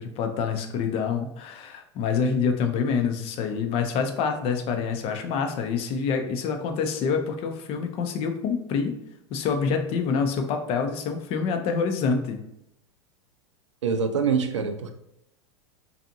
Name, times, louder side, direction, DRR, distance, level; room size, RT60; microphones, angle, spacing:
voice 1, 0.0-8.9 9.3-12.4, left 5 dB, 40° left, 5 dB, 0.4 m, -26 dB
voice 2, 13.8-14.9, right 6 dB, 90° right, 7 dB, 0.4 m, -25 dB
2.6 x 2.4 x 2.6 m, 0.80 s
hypercardioid pair, 100°, 15 cm